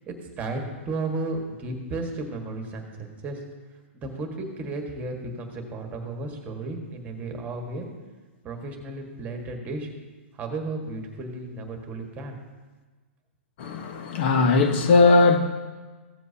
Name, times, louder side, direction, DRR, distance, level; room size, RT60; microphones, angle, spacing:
voice 1, 0.0-3.4 3.9-7.9 8.4-9.9 10.3-12.4, right 2 dB, 20° right, 1.6 m, -34 dB
voice 2, 13.6-15.4, left 3 dB, 55° left, 1.3 m, -19 dB
15.5 x 7.5 x 2.8 m
hypercardioid pair, 130°, 7 cm